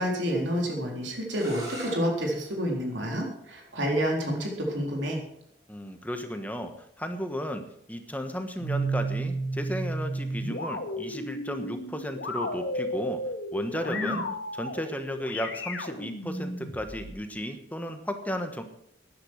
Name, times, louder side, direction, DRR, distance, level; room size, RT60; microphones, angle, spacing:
voice 1, 0.0-5.2 13.8-14.2, equal, 80° right, 0 dB, 4.0 m, -29 dB
sound 1, 1.3-7.0, equal, 15° right, 5.3 m, -46 dB
voice 2, 5.7-7.6 7.9-13.2 13.5-14.2 14.5-18.6, equal, 10° left, 7 dB, 1.2 m, -34 dB
sound 2, 8.6-17.2, right 1 dB, 70° left, 2.1 m, -33 dB
13.0 x 10.0 x 6.3 m, 0.69 s
head